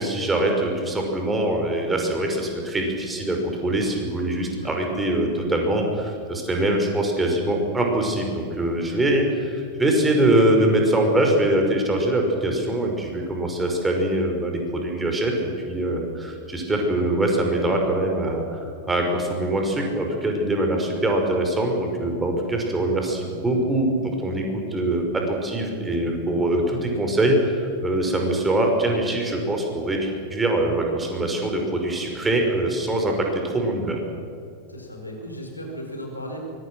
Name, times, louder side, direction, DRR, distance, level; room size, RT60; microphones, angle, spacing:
voice 1, 0.0-34.0, right 1 dB, 10° right, 2 dB, 5.4 m, -23 dB
voice 2, 34.7-36.4, equal, 85° left, 2 dB, 5.1 m, -36 dB
24.5 x 22.5 x 6.4 m, 2.5 s
figure-of-eight pair, 90°, 0 cm